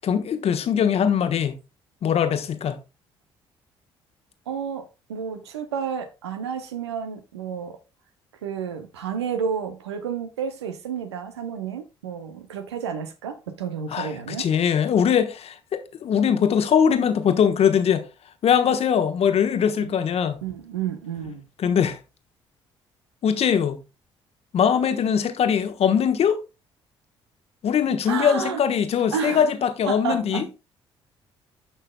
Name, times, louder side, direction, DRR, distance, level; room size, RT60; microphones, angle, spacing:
voice 1, 0.0-1.6 2.0-2.8 13.9-18.0 18.4-20.4 21.6-22.0 23.2-23.8 24.5-26.4 27.6-30.4, left 8 dB, 45° left, 1.1 m, -21 dB
voice 2, 4.5-7.8 8.4-14.5 19.8-19.9 20.4-21.4 28.1-28.6 29.1-29.5 29.9-30.5, right 7 dB, 80° right, 0.8 m, -31 dB
12.5 x 5.7 x 2.2 m
figure-of-eight pair, 45°, 14 cm